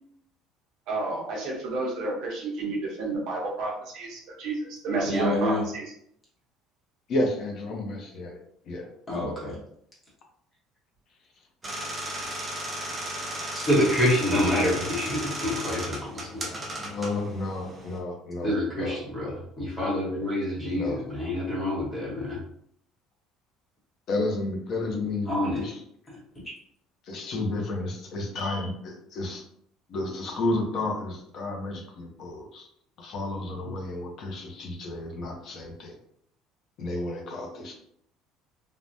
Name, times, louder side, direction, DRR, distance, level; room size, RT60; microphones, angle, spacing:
voice 1, 0.9-5.8, right 2 dB, 55° right, -2 dB, 0.7 m, -31 dB
voice 2, 5.1-5.6 9.1-9.6 12.2-12.3 13.5-16.5 18.4-22.4 25.3-25.6, left 1 dB, 15° left, -5 dB, 0.9 m, -27 dB
voice 3, 7.1-8.4 8.7-8.9 16.5-19.4 20.7-21.0 24.1-25.8 27.0-29.4 29.9-32.7 33.0-36.0 36.8-37.7, left 2 dB, 40° left, 2 dB, 0.6 m, -32 dB
sound 1, 11.6-18.0, right 1 dB, 15° right, 0.5 m, -35 dB
3.3 x 2.1 x 2.6 m, 0.69 s
cardioid pair, 175°, 0 cm